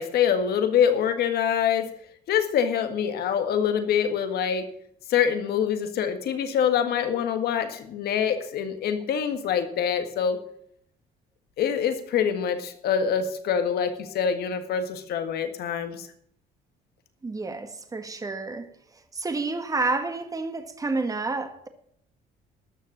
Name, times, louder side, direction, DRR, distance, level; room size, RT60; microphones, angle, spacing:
voice 1, 0.0-1.9 2.3-4.7 5.1-10.4 11.6-16.1, left 8 dB, 70° left, 1.8 m, -25 dB
voice 2, 17.2-18.7 19.1-21.7, right 3 dB, 20° right, 1.8 m, -29 dB
13.0 x 6.6 x 8.7 m
cardioid pair, 110°, 17 cm